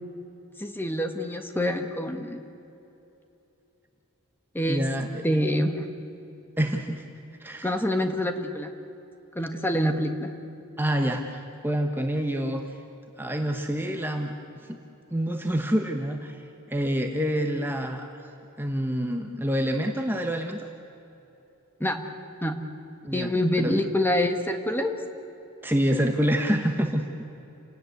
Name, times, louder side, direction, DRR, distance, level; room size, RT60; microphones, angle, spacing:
voice 1, 0.6-2.4 4.5-4.8 5.2-5.8 7.6-8.7 9.3-10.3 21.8-22.0 22.4-22.5 23.1-24.9, left 1 dB, 10° left, 5 dB, 1.6 m, -26 dB
voice 2, 4.7-5.2 6.6-7.0 7.4-7.7 10.8-12.6 13.2-14.3 15.1-16.4 16.7-18.3 18.6-20.7 23.0-23.3 23.6-23.8 25.6-27.0, equal, 10° right, 3 dB, 1.2 m, -27 dB
29.0 x 17.5 x 9.5 m, 3.0 s
head